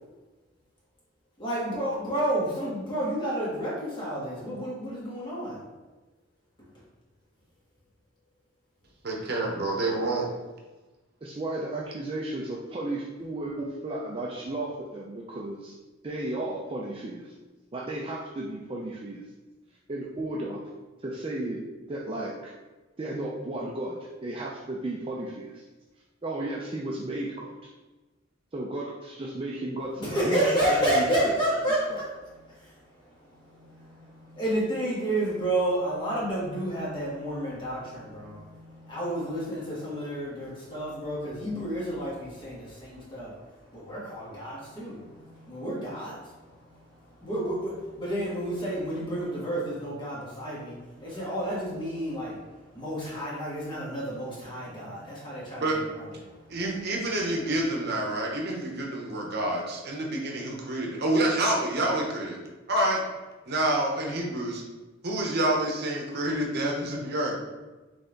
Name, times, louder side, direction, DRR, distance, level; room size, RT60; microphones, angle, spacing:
voice 1, 1.4-5.6 6.6-6.8 29.9-55.7 55.9-56.6, right 1 dB, 25° left, -6 dB, 1.5 m, -31 dB
voice 2, 9.0-10.3 55.5-55.8 56.5-62.4 62.7-63.0 63.4-64.6 65.0-67.4, right 1 dB, 55° right, 0 dB, 0.9 m, -28 dB
voice 3, 11.2-15.7 16.0-17.3 17.7-19.2 19.9-20.7 21.0-22.5 23.0-25.6 26.2-27.7 28.5-31.3, right 1 dB, 30° right, -4 dB, 0.5 m, -34 dB
4.0 x 3.3 x 3.8 m, 1.2 s
head